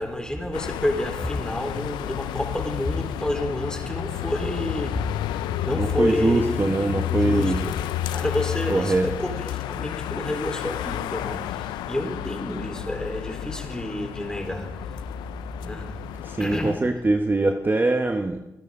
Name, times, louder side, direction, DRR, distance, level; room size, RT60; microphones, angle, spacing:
voice 1, 0.0-7.8 8.1-15.0 15.6-16.0 16.4-16.8, left 1 dB, 10° left, 3.9 m, -29 dB
sound 1, 0.5-16.8, left 13 dB, 85° left, 0.4 m, -31 dB
voice 2, 5.7-7.7 8.7-9.3 16.2-18.4, right 2 dB, 30° right, 1.1 m, -23 dB
25.0 x 10.5 x 3.8 m
supercardioid pair, 45°, 7 cm